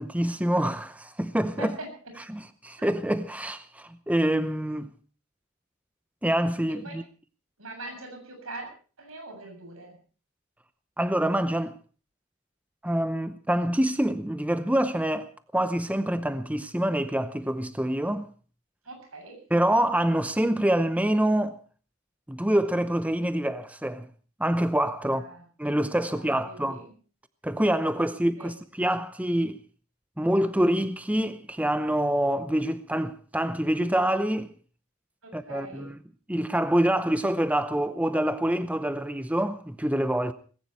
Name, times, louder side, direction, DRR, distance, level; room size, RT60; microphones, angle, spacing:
voice 1, 0.0-1.7 2.3-4.9 6.2-7.0 11.0-11.7 12.8-18.3 19.5-21.6 22.3-24.1 24.4-25.2 25.6-26.8 27.4-29.6 30.2-34.5 35.3-36.0 36.3-40.3, right 1 dB, 5° right, 0.7 m, -26 dB
voice 2, 1.6-2.1 2.8-2.9 6.7-7.0 7.6-8.7 9.0-10.0 18.9-19.4 25.0-25.4 26.0-26.9 28.4-28.5 35.2-35.9, right 2 dB, 75° right, 7.8 m, -42 dB
19.5 x 17.0 x 4.5 m
head